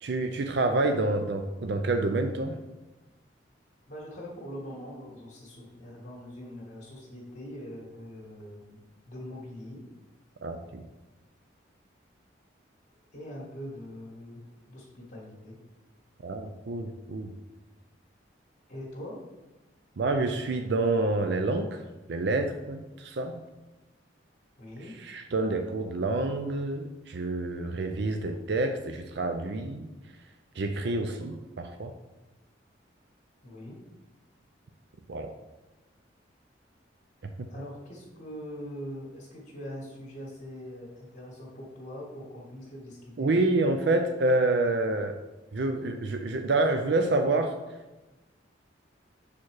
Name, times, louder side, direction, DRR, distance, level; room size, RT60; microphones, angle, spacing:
voice 1, 0.0-2.6 10.4-10.8 16.2-17.3 20.0-21.8 22.1-23.4 25.0-29.9 30.6-31.9 35.1-35.3 43.2-45.2 45.5-47.5, right 2 dB, 60° right, 6 dB, 0.5 m, -28 dB
voice 2, 3.9-8.8 9.1-9.8 13.1-15.6 18.7-19.2 24.6-24.9 33.4-33.8 37.5-43.3, equal, 45° left, -4 dB, 1.6 m, -42 dB
7.1 x 4.5 x 4.7 m, 1.1 s
head